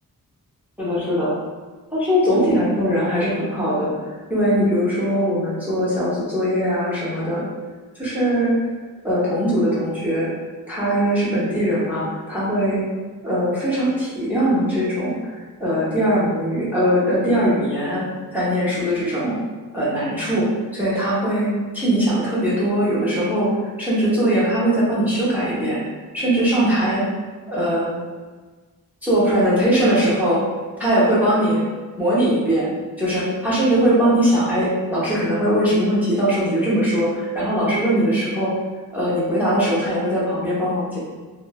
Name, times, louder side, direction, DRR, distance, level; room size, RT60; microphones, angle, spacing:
voice 1, 0.8-1.3 1.9-7.4 7.9-8.6 9.0-10.3 10.7-12.8 13.2-15.3 15.6-18.0 18.3-19.4 19.7-20.5 20.7-25.8 26.1-27.1 27.5-27.9 29.0-30.4 30.8-31.6 32.0-38.5 38.9-41.0, equal, 5° right, -10 dB, 0.8 m, -20 dB
3.0 x 2.1 x 2.2 m, 1.3 s
wide cardioid pair, 125°, 37 cm